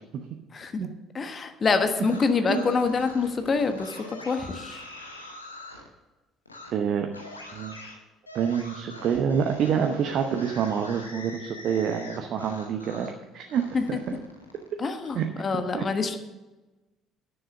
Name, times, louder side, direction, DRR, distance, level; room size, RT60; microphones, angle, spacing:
voice 1, 1.1-4.8 13.7-13.8 14.8-16.2, left 4 dB, 35° left, 8 dB, 1.2 m, -26 dB
sound 1, 1.9-5.9 6.4-6.7 7.1-13.2 13.5-15.2, left 1 dB, 90° left, 1.0 m, -44 dB
voice 2, 6.7-7.1 7.5-7.7 8.3-13.6 13.9-14.0 15.1-15.2 15.5-15.8, right 7 dB, 55° right, 4 dB, 0.9 m, -27 dB
10.0 x 6.9 x 6.5 m, 1.1 s
figure-of-eight pair, 55°, 0 cm